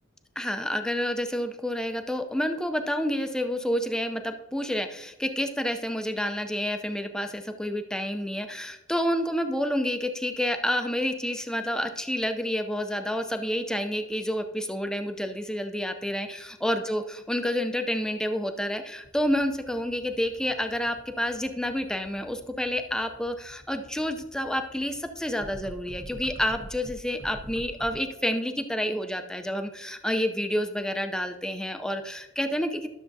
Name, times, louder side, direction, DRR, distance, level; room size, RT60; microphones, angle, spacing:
voice 1, 0.4-32.9, equal, 5° left, 7 dB, 0.5 m, -29 dB
sound 1, 19.0-28.0, equal, 70° right, 1.7 m, -45 dB
12.5 x 6.8 x 2.7 m, 0.97 s
head